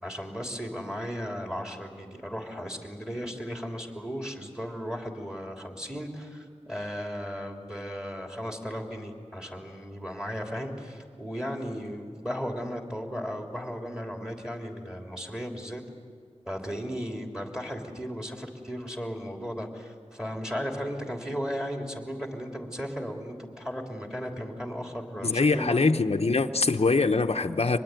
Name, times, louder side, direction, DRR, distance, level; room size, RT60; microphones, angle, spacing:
voice 1, 0.0-15.8 16.5-25.8, equal, 5° right, 2 dB, 3.4 m, -35 dB
voice 2, 25.2-27.8, left 3 dB, 60° left, 5 dB, 0.9 m, -23 dB
25.0 x 20.5 x 9.3 m, 2.1 s
wide cardioid pair, 65°, 12 cm